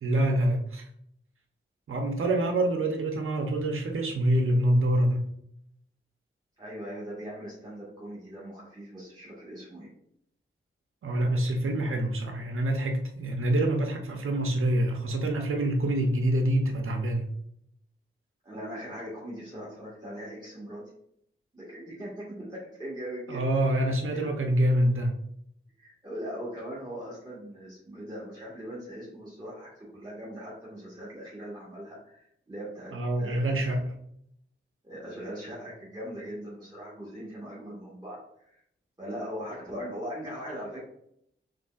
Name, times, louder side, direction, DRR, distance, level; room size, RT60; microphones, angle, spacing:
voice 1, 0.0-0.8 1.9-5.3 11.0-17.3 23.3-25.1 32.9-33.8, right 1 dB, 80° right, 3 dB, 0.7 m, -26 dB
voice 2, 6.6-9.9 18.4-20.9 21.5-23.5 24.1-24.3 25.8-33.8 34.8-38.6 39.0-40.8, equal, 20° right, -7 dB, 1.6 m, -40 dB
5.1 x 3.7 x 2.4 m, 0.72 s
cardioid pair, 60°, 21 cm